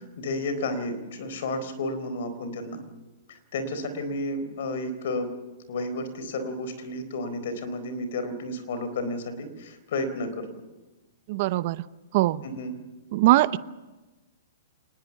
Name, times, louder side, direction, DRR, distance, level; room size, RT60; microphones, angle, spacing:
voice 1, 0.2-2.8 3.3-5.3 5.7-10.5 12.4-12.8, left 2 dB, 65° left, 11 dB, 4.2 m, -32 dB
voice 2, 11.3-11.8 12.1-12.5 13.1-13.6, right 17 dB, 50° right, 16 dB, 0.8 m, -21 dB
25.5 x 20.0 x 7.2 m, 1.1 s
hypercardioid pair, 125°, 0 cm